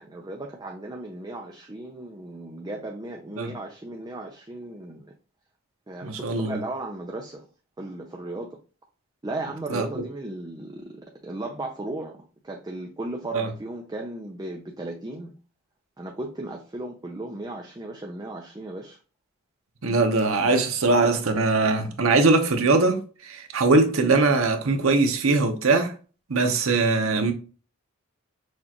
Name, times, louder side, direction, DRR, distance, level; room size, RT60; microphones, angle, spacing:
voice 1, 0.0-5.1 5.9-7.5 7.8-8.6 9.2-15.3 16.0-19.0, right 2 dB, 20° right, 0.5 m, -36 dB
voice 2, 6.0-6.6 9.7-10.0 13.3-13.5 19.8-25.9 26.3-27.3, right 3 dB, 75° right, 0.8 m, -21 dB
6.3 x 2.4 x 2.9 m
head